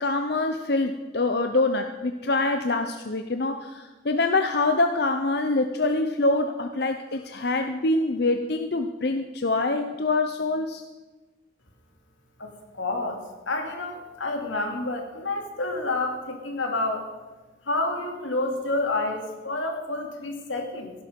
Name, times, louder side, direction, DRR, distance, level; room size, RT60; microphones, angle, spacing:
voice 1, 0.0-10.8, left 2 dB, 55° left, 6 dB, 0.8 m, -25 dB
voice 2, 12.4-13.2 13.5-17.1 17.7-20.9, left 2 dB, 85° left, 3 dB, 2.6 m, -29 dB
16.5 x 11.5 x 5.3 m, 1.2 s
head